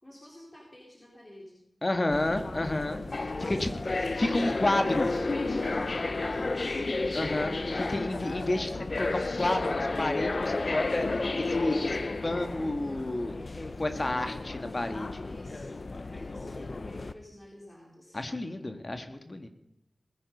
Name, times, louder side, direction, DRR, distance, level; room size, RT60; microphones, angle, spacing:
voice 1, 0.0-1.6 2.1-2.2 3.2-7.0 15.1-18.3, left 1 dB, 25° left, -3 dB, 4.1 m, -49 dB
voice 2, 1.8-3.0 3.4-3.7 4.2-5.1 7.1-15.2 18.1-19.5, left 1 dB, 45° left, 7 dB, 1.8 m, -31 dB
sound 1, 2.1-17.1, left 3 dB, 60° left, 0.9 m, -32 dB
21.0 x 9.8 x 5.4 m, 0.84 s
cardioid pair, 45°, 0 cm